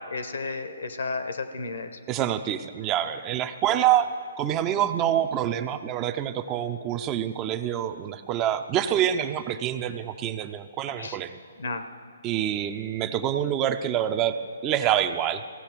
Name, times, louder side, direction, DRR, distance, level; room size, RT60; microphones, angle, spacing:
voice 1, 0.1-1.9 11.0-11.2 11.6-11.8, left 4 dB, 75° left, 9 dB, 1.0 m, -32 dB
voice 2, 2.1-4.1 4.4-11.4 12.2-14.4 14.6-15.4, right 10 dB, 25° right, 10 dB, 0.5 m, -26 dB
15.5 x 8.0 x 4.5 m, 2.3 s
hypercardioid pair, 145°, 0 cm